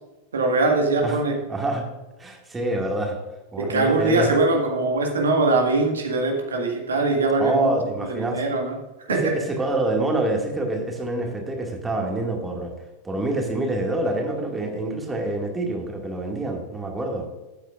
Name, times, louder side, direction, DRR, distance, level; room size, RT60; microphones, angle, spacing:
voice 1, 0.3-1.3 3.6-7.7 8.0-8.8 9.1-9.2, right 3 dB, 70° right, 2 dB, 1.6 m, -22 dB
voice 2, 1.5-1.8 2.2-3.2 3.5-4.4 7.4-8.4 9.1-12.7 13.0-17.3, right 2 dB, 15° right, 1 dB, 2.1 m, -26 dB
14.0 x 8.9 x 2.5 m, 1.1 s
figure-of-eight pair, 90°, 0 cm